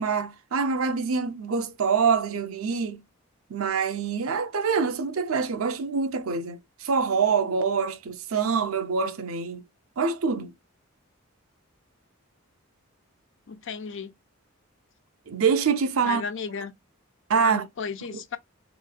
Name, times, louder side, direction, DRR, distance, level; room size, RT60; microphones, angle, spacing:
voice 1, 0.0-3.0 3.5-9.6 10.0-10.5 15.3-16.2 17.3-17.6, right 5 dB, 85° right, 0.6 m, -25 dB
voice 2, 13.5-14.1 16.0-16.7 17.4-18.4, left 5 dB, 65° left, 0.5 m, -34 dB
3.6 x 3.1 x 2.3 m
head